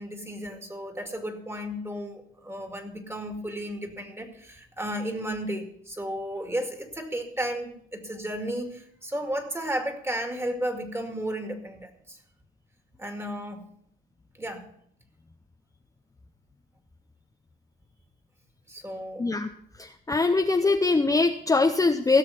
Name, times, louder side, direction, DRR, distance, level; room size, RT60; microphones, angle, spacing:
voice 1, 0.0-12.2 13.0-13.6 14.4-14.7 18.7-19.3, equal, 10° right, 5 dB, 2.2 m, -33 dB
voice 2, 19.2-19.5 19.8-22.2, left 3 dB, 15° left, 5 dB, 0.7 m, -22 dB
16.5 x 6.4 x 5.9 m, 0.67 s
cardioid pair, 90°, 20 cm